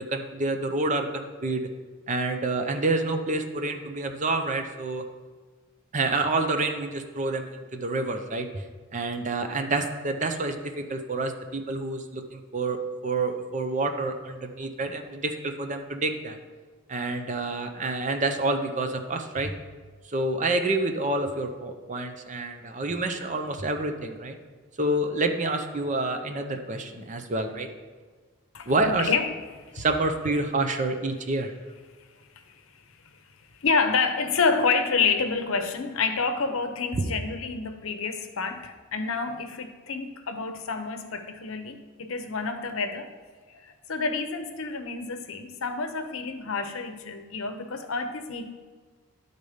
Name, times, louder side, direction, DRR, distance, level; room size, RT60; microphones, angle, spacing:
voice 1, 0.1-1.7 2.1-5.0 5.9-8.6 8.9-16.4 16.9-19.5 20.1-24.4 24.8-27.7 28.7-29.1 29.8-31.5, right 2 dB, 35° right, 6 dB, 0.6 m, -28 dB
voice 2, 28.5-29.8 32.4-32.6 33.6-43.1 43.5-48.5, left 4 dB, 70° left, 8 dB, 0.7 m, -28 dB
11.0 x 4.0 x 5.0 m, 1.4 s
head